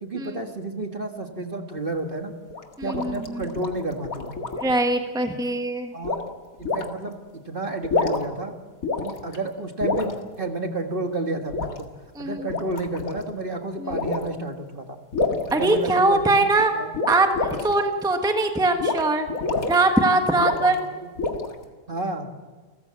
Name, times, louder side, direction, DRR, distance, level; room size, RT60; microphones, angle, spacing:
voice 1, 0.0-2.4 2.8-4.4 5.9-6.2 6.6-8.6 9.0-11.9 12.2-15.0 15.5-16.4 16.7-16.9 20.6-21.1 21.9-22.3, right 2 dB, 35° right, 4 dB, 1.7 m, -31 dB
sound 1, 2.5-4.8 6.0-6.3 6.7-6.9 7.7-8.4 8.8-9.4 9.8-10.1 11.5-11.8 12.4-13.2 13.9-14.3 15.1-16.3 16.9-17.8 18.8-19.0 19.3-19.8 20.4-20.8 21.2-21.6, left 3 dB, 55° left, 2.3 m, -27 dB
voice 2, 2.8-3.4 4.6-5.9 12.1-12.5 13.8-13.9 15.5-16.7 17.1-19.3 19.7-20.8, right 2 dB, 5° right, 5 dB, 1.2 m, -22 dB
29.5 x 14.5 x 7.6 m, 1.3 s
omnidirectional pair, 1.8 m